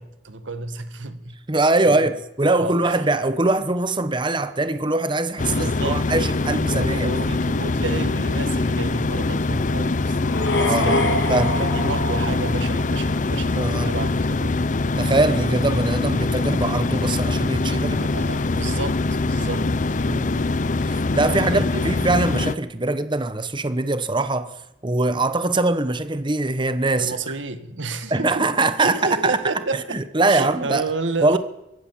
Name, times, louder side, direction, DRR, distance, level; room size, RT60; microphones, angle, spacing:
voice 1, 0.0-1.3 1.8-2.1 2.6-2.9 5.5-6.1 6.7-10.2 10.4-14.7 17.6-20.0 21.5-21.9 27.0-28.5 28.8-30.0 30.3-31.4, right 3 dB, 90° right, 1.8 m, -31 dB
voice 2, 1.5-7.1 10.6-11.0 11.3-11.6 13.5-13.9 15.0-18.0 19.4-19.6 20.0-20.5 20.8-24.5 24.8-27.1 28.1-29.0 29.2-29.4 29.7-30.8 31.2-31.4, right 2 dB, 25° right, 1.0 m, -22 dB
sound 1, 5.4-22.5, left 3 dB, 45° left, 0.7 m, -23 dB
sound 2, 10.2-13.2, left 1 dB, 65° left, 3.1 m, -25 dB
24.0 x 16.0 x 7.5 m
head